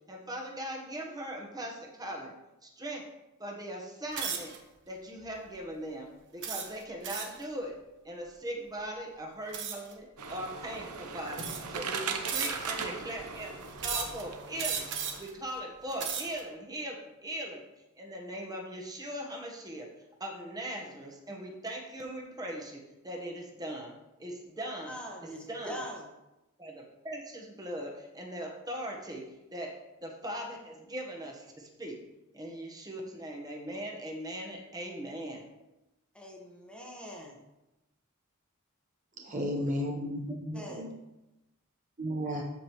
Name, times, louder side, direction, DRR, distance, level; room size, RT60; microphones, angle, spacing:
voice 1, 0.1-2.3 2.6-3.1 3.4-4.5 4.9-7.8 8.0-14.9 15.2-17.6 18.0-19.9 20.2-23.9 24.2-25.8 26.6-29.2 29.5-29.7 30.0-32.0 32.3-35.4, right 1 dB, 15° right, 0 dB, 1.2 m, -40 dB
sound 1, 4.1-4.6 5.2-5.5 6.4-7.4 9.5-9.9 10.8-10.9 11.3-11.8 12.3-12.9 13.8-14.2 14.6-15.3 15.8-16.4, right 7 dB, 55° right, 1.1 m, -35 dB
sound 2, 10.2-15.2, right 5 dB, 85° right, 0.9 m, -39 dB
voice 2, 24.9-26.1 36.1-37.4 39.3-39.4 40.5-40.9, equal, 5° left, -1 dB, 1.2 m, -43 dB
voice 3, 39.2-40.9 42.0-42.4, equal, 35° right, 0 dB, 0.9 m, -33 dB
13.0 x 5.0 x 3.1 m, 0.97 s
head